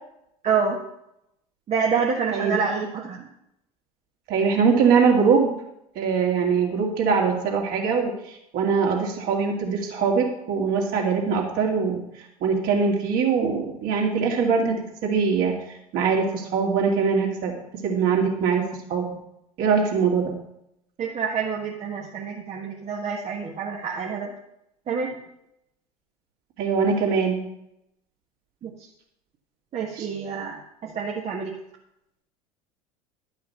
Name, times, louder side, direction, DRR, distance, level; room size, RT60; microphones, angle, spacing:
voice 1, 0.4-0.8 1.7-3.3 21.0-24.3 24.9-25.2 28.6-28.7 29.7-31.5, right 6 dB, 35° right, -1 dB, 1.3 m, -27 dB
voice 2, 2.3-2.8 4.3-5.5 6.0-12.0 12.4-14.8 15.0-17.5 17.8-18.6 18.9-19.1 19.6-20.3 26.6-27.4 29.9-30.1, right 5 dB, 50° right, 0 dB, 2.7 m, -22 dB
11.5 x 5.7 x 5.7 m, 0.80 s
figure-of-eight pair, 70°, 19 cm